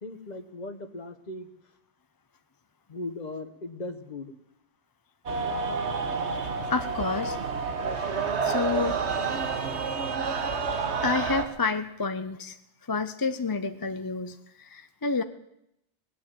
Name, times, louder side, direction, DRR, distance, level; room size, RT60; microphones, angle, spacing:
voice 1, 0.0-1.5 2.9-4.3, left 2 dB, 40° left, 9 dB, 1.1 m, -38 dB
sound 1, 5.3-11.5, right 5 dB, 85° right, 1.5 m, -29 dB
voice 2, 6.3-7.4 7.6-7.7 8.4-9.0 11.0-12.6 12.9-15.2, left 4 dB, 25° left, 9 dB, 0.5 m, -29 dB
18.0 x 9.7 x 7.6 m, 0.78 s
omnidirectional pair, 1.1 m